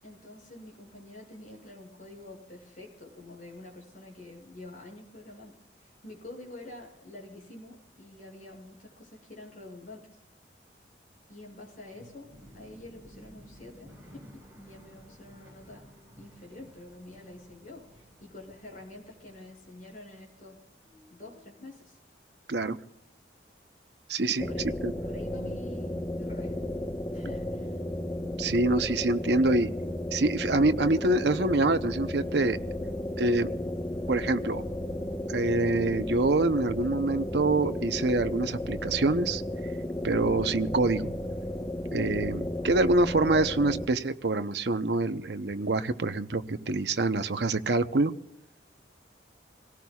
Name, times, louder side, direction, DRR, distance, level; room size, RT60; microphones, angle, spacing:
voice 1, 0.0-10.2 11.3-15.9 16.2-20.6 21.1-22.0 24.3-24.7 25.1-26.5 27.1-27.8, left 2 dB, 45° left, 0 dB, 6.1 m, -47 dB
sound 1, 10.8-20.6 20.9-21.7, equal, 10° right, 4.4 m, -55 dB
voice 2, 24.1-24.5 24.8-24.9 28.4-29.7 30.1-32.6 33.2-33.5 34.1-34.6 35.3-39.4 40.0-41.1 41.9-48.1, right 2 dB, 65° right, 9 dB, 0.8 m, -26 dB
sound 2, 24.4-43.9, left 1 dB, 20° left, 1.1 m, -34 dB
26.5 x 18.0 x 2.4 m, 0.81 s
head